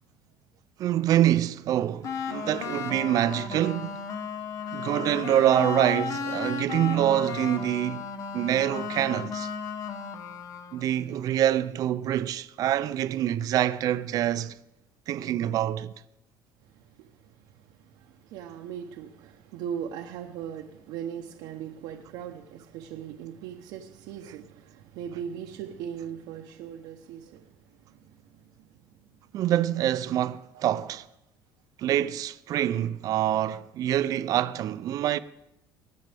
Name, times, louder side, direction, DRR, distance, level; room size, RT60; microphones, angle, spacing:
voice 1, 0.8-4.0 4.7-8.1 8.3-9.5 10.7-14.6 15.1-15.9 29.3-31.0 31.8-35.2, right 12 dB, 55° right, 0.5 m, -25 dB
sound 1, 2.0-10.8, left 6 dB, 50° left, 1.0 m, -34 dB
voice 2, 16.6-28.9 30.5-30.6, right 8 dB, 80° right, 0.9 m, -40 dB
20.5 x 8.7 x 3.5 m
cardioid pair, 100°, 7 cm